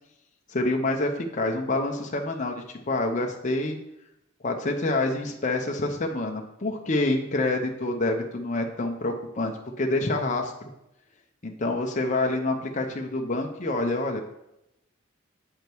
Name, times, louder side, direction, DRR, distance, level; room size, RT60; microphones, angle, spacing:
voice 1, 0.5-3.8 4.4-9.5 9.8-10.7 11.4-14.2, left 2 dB, 40° left, 2 dB, 0.7 m, -27 dB
7.9 x 5.1 x 4.6 m, 0.86 s
head